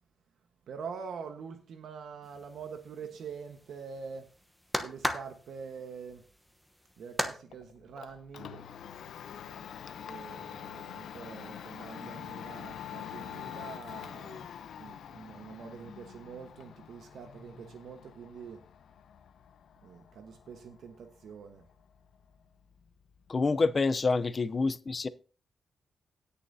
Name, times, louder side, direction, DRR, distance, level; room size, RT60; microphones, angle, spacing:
voice 1, 0.7-4.3 4.8-6.2 7.0-8.6 10.0-14.5 14.8-18.6 19.8-21.6, right 6 dB, 70° right, 1.2 m, -45 dB
sound 1, 2.2-7.4, equal, ahead, 1.0 m, -37 dB
Domestic sounds home sounds, 7.5-23.3, left 9 dB, 75° left, 0.7 m, -46 dB
voice 2, 23.3-25.1, left 3 dB, 30° left, 0.6 m, -27 dB
18.0 x 6.9 x 2.7 m
wide cardioid pair, 160°, 0 cm